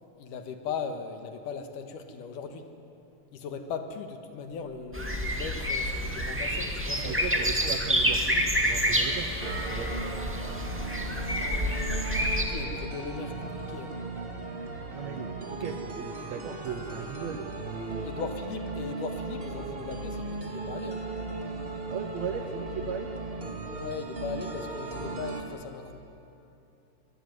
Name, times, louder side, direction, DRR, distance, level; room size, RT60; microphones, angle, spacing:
voice 1, 0.2-2.7 3.3-7.7 12.2-14.0 18.0-21.0 23.8-26.0, left 5 dB, 70° left, 6 dB, 2.9 m, -38 dB
sound 1, 4.9-12.4, equal, 5° right, 1.0 m, -28 dB
voice 2, 6.9-9.4 9.7-9.9 14.9-18.1 21.9-23.1, right 7 dB, 65° right, 7 dB, 1.8 m, -37 dB
sound 2, 9.4-25.4, right 3 dB, 25° right, 1.5 m, -37 dB
23.5 x 21.5 x 9.5 m, 2.8 s
omnidirectional pair, 4.0 m